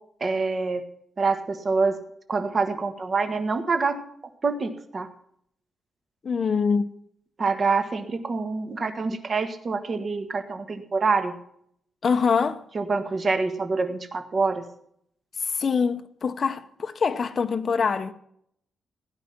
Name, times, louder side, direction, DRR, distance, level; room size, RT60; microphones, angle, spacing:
voice 1, 0.2-0.8 1.2-2.0 2.3-4.0 4.4-5.1 7.4-11.4 12.7-14.6, right 4 dB, 35° right, 1.6 m, -26 dB
voice 2, 6.2-6.9 12.0-12.6 15.4-18.1, left 5 dB, 40° left, 0.8 m, -24 dB
17.0 x 9.5 x 5.9 m
wide cardioid pair, 145°, 0 cm